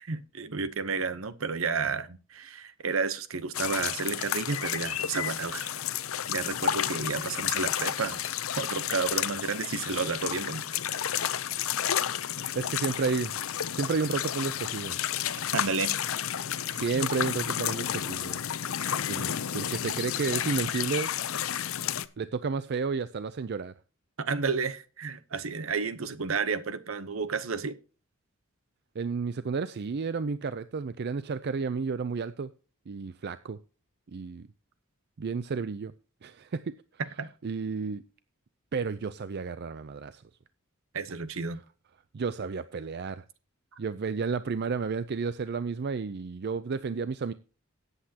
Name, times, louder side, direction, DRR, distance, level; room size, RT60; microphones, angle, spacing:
voice 1, 0.0-5.8 6.3-8.2 8.5-10.6 15.5-16.0 16.9-17.0 24.2-27.8 37.0-37.3 40.9-41.6, right 4 dB, 70° right, 0.9 m, -31 dB
sound 1, 3.5-22.1, left 10 dB, 75° left, 0.6 m, -31 dB
voice 2, 12.5-13.3 13.7-15.0 16.7-18.4 19.1-21.1 22.2-23.7 29.0-32.5 32.9-33.6 34.1-34.5 35.2-35.9 36.2-36.7 37.4-38.0 38.7-40.2 42.1-43.2 43.8-47.3, right 5 dB, 50° right, 0.5 m, -31 dB
17.5 x 8.2 x 2.9 m
head